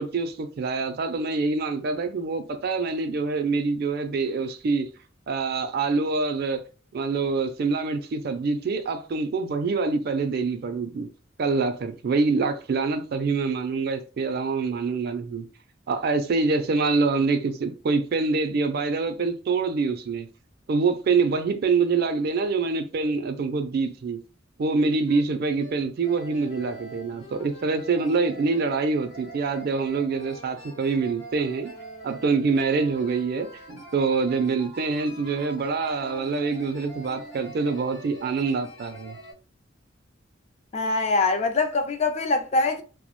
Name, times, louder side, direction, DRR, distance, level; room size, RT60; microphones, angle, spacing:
voice 1, 0.0-4.9 5.3-6.6 6.9-11.1 11.4-15.5 15.9-20.3 20.7-24.2 24.6-31.7 32.0-39.2, right 4 dB, 55° right, 0.4 m, -25 dB
sound 1, 25.1-25.2 25.6-25.7 26.0-39.3, right 2 dB, 75° left, 0.9 m, -44 dB
voice 2, 40.7-42.8, left 3 dB, 35° left, 0.3 m, -23 dB
2.3 x 2.0 x 2.9 m
head